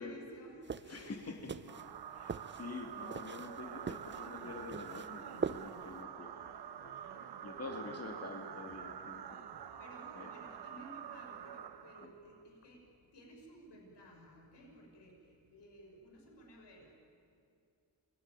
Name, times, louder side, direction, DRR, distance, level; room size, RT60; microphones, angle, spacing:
voice 1, 0.0-1.0 9.5-12.8 13.1-16.9, equal, 75° left, 1 dB, 6.1 m, -55 dB
sound 1, 0.6-6.0, right 6 dB, 25° right, 0.7 m, -43 dB
voice 2, 0.9-1.6 2.1-6.4 6.8-9.4 10.1-10.3 12.0-12.1, left 3 dB, 35° left, 3 dB, 2.7 m, -47 dB
sound 2, 1.7-12.4, right 9 dB, 65° right, 1.3 m, -47 dB
28.0 x 20.5 x 9.2 m, 2.5 s
cardioid pair, 90°, 42 cm